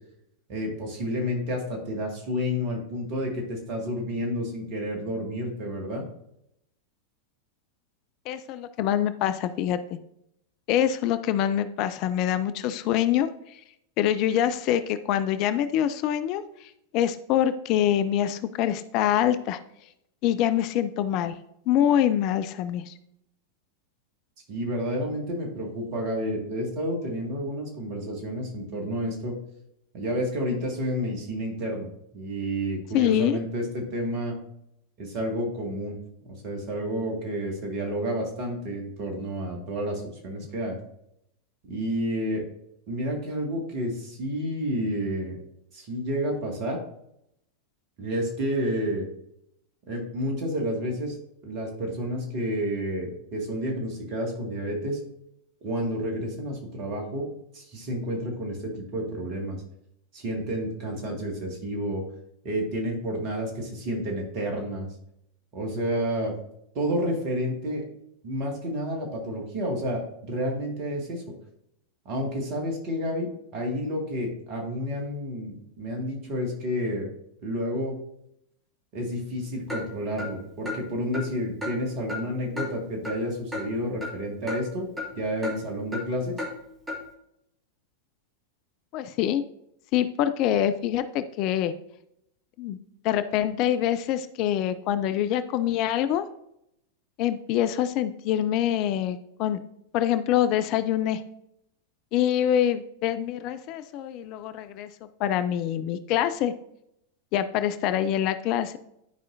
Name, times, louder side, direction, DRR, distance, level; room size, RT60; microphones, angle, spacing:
voice 1, 0.5-6.0 24.5-29.4 29.9-34.4 35.0-36.0 36.3-40.8 41.6-42.5 42.9-45.4 45.7-46.8 48.0-49.1 49.9-51.1 51.4-55.0 55.6-57.3 57.5-59.6 60.1-62.1 62.4-64.9 65.5-66.4 66.7-67.8 68.2-71.3 72.1-77.1 77.4-78.0 78.9-84.9 85.1-86.4, equal, 40° right, 1 dB, 2.1 m, -30 dB
voice 2, 8.3-9.8 10.7-13.3 14.0-19.6 20.2-21.3 21.7-22.9 32.9-33.4 88.9-89.4 89.9-91.7 92.6-92.8 93.0-96.2 97.2-99.6 99.9-101.2 102.1-104.9 105.2-106.5 107.3-108.8, left 11 dB, 40° left, 11 dB, 0.4 m, -25 dB
Clock, 79.7-79.8 80.2-80.3 80.7-80.8 81.1-81.3 81.6-81.7 82.1-82.2 82.6-82.7 83.0-83.2 83.5-83.6 84.0-84.1 84.5-84.6 85.0-85.1 85.4-85.6 85.9-86.0 86.4-86.5 86.9-87.0, left 2 dB, 10° right, 2.3 m, -32 dB
11.0 x 4.8 x 2.7 m, 0.78 s
figure-of-eight pair, 90°, 0 cm